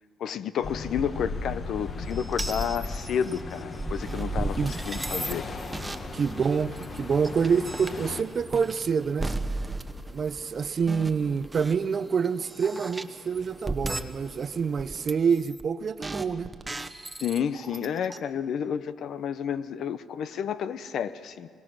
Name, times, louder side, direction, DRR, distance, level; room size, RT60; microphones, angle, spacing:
voice 1, 0.2-5.6 17.2-21.5, left 8 dB, 70° left, 14 dB, 0.7 m, -31 dB
sound 1, 0.6-8.2, left 3 dB, 40° left, 1.5 m, -37 dB
sound 2, 2.1-11.8 12.2-14.5 14.8-15.7 16.0-18.2, right 2 dB, 15° right, 0.9 m, -35 dB
sound 3, 5.4-15.1, equal, 5° left, 2.0 m, -51 dB
voice 2, 6.1-9.3 10.1-16.5, right 6 dB, 45° right, 16 dB, 0.5 m, -27 dB
22.5 x 19.5 x 6.2 m, 2.1 s
cardioid pair, 90°, 0 cm